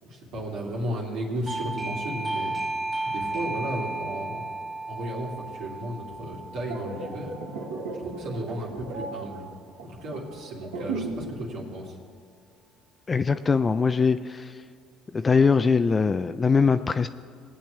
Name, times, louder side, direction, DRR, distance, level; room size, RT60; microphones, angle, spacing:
voice 1, 0.0-2.5 3.0-4.6 4.9-7.3 8.0-9.5 9.8-12.0, right 1 dB, 75° right, -3 dB, 2.8 m, -34 dB
Doorbell, 1.5-7.9, right 2 dB, 15° right, 1.0 m, -34 dB
sound 1, 6.4-11.3 11.6-11.8, right 3 dB, 90° right, 1.4 m, -36 dB
voice 2, 13.1-14.5 15.1-17.1, left 5 dB, 30° left, 10 dB, 0.4 m, -22 dB
20.5 x 8.6 x 3.3 m, 2.2 s
hypercardioid pair, 70°, 0 cm